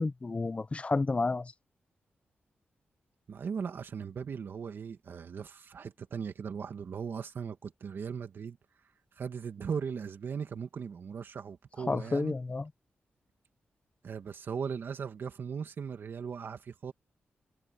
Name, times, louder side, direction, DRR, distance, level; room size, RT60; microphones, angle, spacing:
voice 1, 0.0-1.5 11.9-12.7, left 3 dB, 30° left, 0.9 m, -30 dB
voice 2, 3.3-8.6 9.2-12.3 14.0-16.9, right 6 dB, 65° right, 2.3 m, -38 dB
cardioid pair, 80°, 4 cm